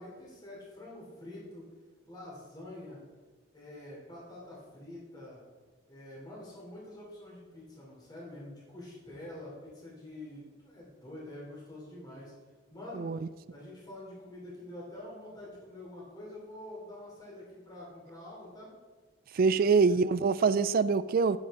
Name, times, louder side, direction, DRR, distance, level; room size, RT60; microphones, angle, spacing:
voice 1, 0.0-1.7 2.0-3.0 3.5-5.4 5.9-12.3 12.7-13.1 13.5-18.7 19.5-19.9, left 1 dB, 20° left, -5 dB, 3.4 m, -46 dB
voice 2, 19.3-21.4, right 5 dB, 45° right, 15 dB, 0.3 m, -25 dB
11.5 x 9.5 x 3.8 m, 1.4 s
head